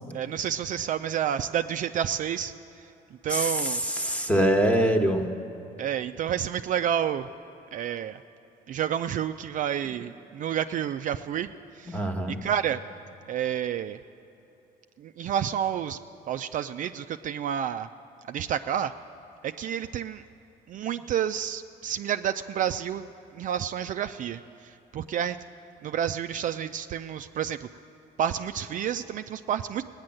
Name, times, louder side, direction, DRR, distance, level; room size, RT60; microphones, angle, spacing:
voice 1, 0.1-2.5 3.2-3.8 5.8-7.3 7.7-8.2 8.7-11.5 11.8-12.0 12.4-12.8 13.3-14.0 15.0-16.0 16.3-17.9 18.3-18.9 19.4-20.2 20.7-25.4 25.8-27.7 28.2-29.8, right 9 dB, 50° right, 8 dB, 0.4 m, -29 dB
voice 2, 3.3-5.3 11.9-12.4, equal, 10° left, 5 dB, 1.2 m, -24 dB
17.5 x 9.7 x 7.7 m, 3.0 s
cardioid pair, 110°, 17 cm